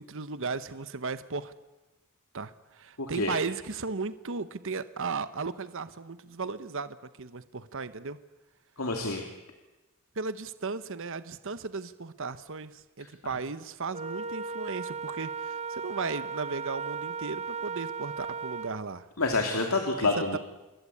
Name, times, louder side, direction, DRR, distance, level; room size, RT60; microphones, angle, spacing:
voice 1, 0.0-1.5 2.3-8.2 10.2-19.1 20.0-20.4, right 4 dB, 65° right, 13 dB, 1.0 m, -36 dB
voice 2, 3.0-3.3 8.8-9.2 19.2-20.4, left 3 dB, 70° left, 3 dB, 3.1 m, -27 dB
Wind instrument woodwind instrument, 13.9-18.8, right 5 dB, 30° right, 1.0 m, -36 dB
28.0 x 22.0 x 8.6 m, 1.1 s
head